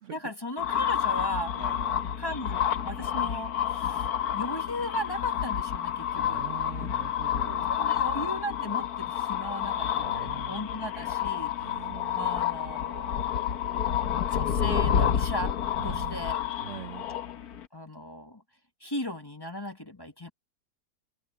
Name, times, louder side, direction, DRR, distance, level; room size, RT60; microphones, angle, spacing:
voice 1, 0.1-1.5 2.2-4.1 4.3-6.4 7.7-11.8 12.1-15.6 15.8-16.4 17.7-18.4 18.8-20.3, left 1 dB, 15° left, 1.6 m, -36 dB
sound 1, 0.6-17.6, left 9 dB, 75° left, 1.6 m, -29 dB
voice 2, 1.6-2.1 6.1-7.7 10.0-10.6 11.6-12.3 15.8-16.2 16.6-17.1, right 11 dB, 60° right, 0.9 m, -43 dB
open air
omnidirectional pair, 1.6 m